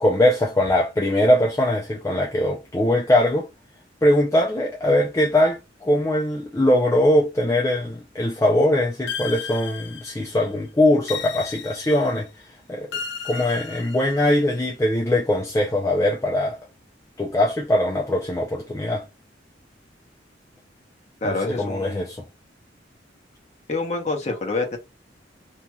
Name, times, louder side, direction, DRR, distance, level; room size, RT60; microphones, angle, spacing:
voice 1, 0.0-3.5 4.0-12.3 12.7-12.9 13.2-16.6 17.2-19.0 21.2-22.2, left 1 dB, 15° left, 0.4 m, -21 dB
sound 1, 9.1-10.4 11.1-12.2 12.9-14.4, left 7 dB, 75° left, 0.6 m, -34 dB
voice 2, 21.2-22.1 23.7-24.8, left 3 dB, 40° left, 0.9 m, -26 dB
2.9 x 2.7 x 2.3 m
head